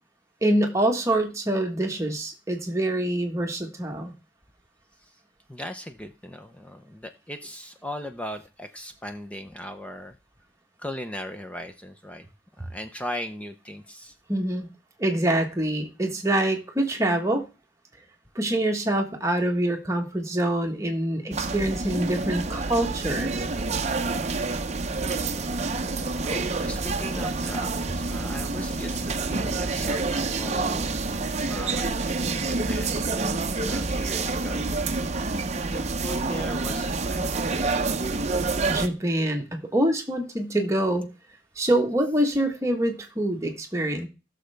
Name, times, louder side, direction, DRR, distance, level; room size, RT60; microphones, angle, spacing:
voice 1, 0.4-4.1 14.3-14.7 15.0-17.4 18.3-23.5 38.7-41.1 41.6-44.1, right 1 dB, 15° right, 2 dB, 1.4 m, -25 dB
voice 2, 5.5-10.2 10.8-12.3 12.6-14.2 26.2-31.1 31.5-33.0 33.7-34.7 35.3-35.4 35.7-37.5, left 1 dB, 5° left, 7 dB, 0.6 m, -38 dB
sound 1, 21.3-38.9, right 3 dB, 35° right, 0.7 m, -28 dB
15.5 x 6.6 x 3.4 m, 0.31 s
head